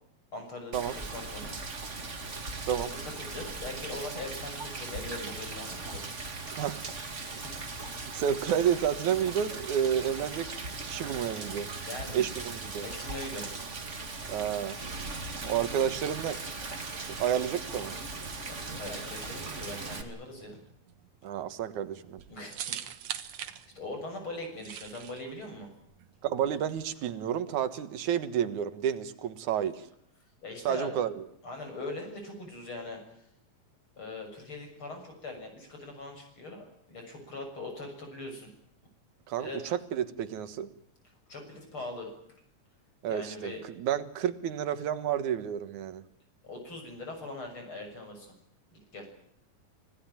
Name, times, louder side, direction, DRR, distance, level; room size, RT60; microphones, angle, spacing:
voice 1, 0.3-0.8 1.1-1.6 3.2-6.1 7.4-7.7 11.9-12.3 12.8-13.5 18.5-20.6 22.3-22.8 23.1-25.7 30.4-31.0 31.4-33.0 34.0-38.6 39.4-39.6 41.3-42.1 43.1-43.6 46.4-48.3 48.7-49.1, left 2 dB, 45° left, 4 dB, 7.5 m, -41 dB
Rain, 0.7-20.0, right 3 dB, 25° right, 2.1 m, -39 dB
voice 2, 8.1-10.6 10.9-11.7 12.1-12.9 14.3-14.8 15.4-16.4 17.2-17.9 21.2-22.2 26.2-29.9 30.6-31.2 39.3-40.7 43.0-46.0, right 9 dB, 90° right, 12 dB, 2.8 m, -30 dB
sound 1, 20.4-26.9, right 10 dB, 70° right, 2.5 m, -43 dB
26.0 x 17.0 x 8.9 m, 0.74 s
omnidirectional pair, 3.3 m